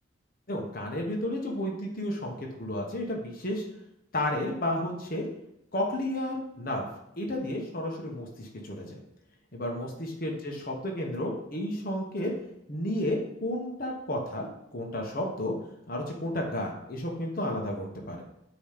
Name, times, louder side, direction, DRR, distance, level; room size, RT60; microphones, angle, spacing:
voice 1, 0.5-3.6 4.1-5.3 5.7-6.9 7.2-9.0 9.5-12.3 12.7-15.5 15.9-18.2, left 1 dB, 45° left, 0 dB, 1.2 m, -32 dB
8.6 x 3.2 x 5.1 m, 0.82 s
head